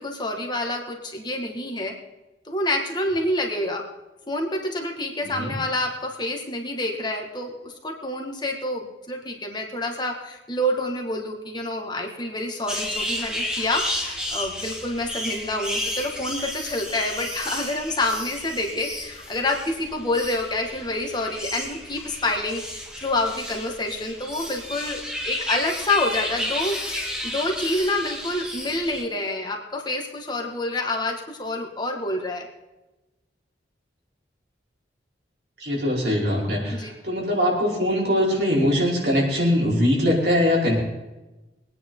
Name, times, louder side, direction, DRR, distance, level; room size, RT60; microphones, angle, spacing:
voice 1, 0.0-2.0 2.5-3.9 4.3-32.5 36.7-36.9, left 2 dB, 25° left, 1 dB, 2.1 m, -28 dB
voice 2, 5.2-5.6 35.6-40.7, left 1 dB, 65° right, -3 dB, 5.1 m, -22 dB
sound 1, 12.7-29.0, left 1 dB, 5° right, 1.6 m, -32 dB
23.5 x 9.6 x 4.0 m, 1.1 s
head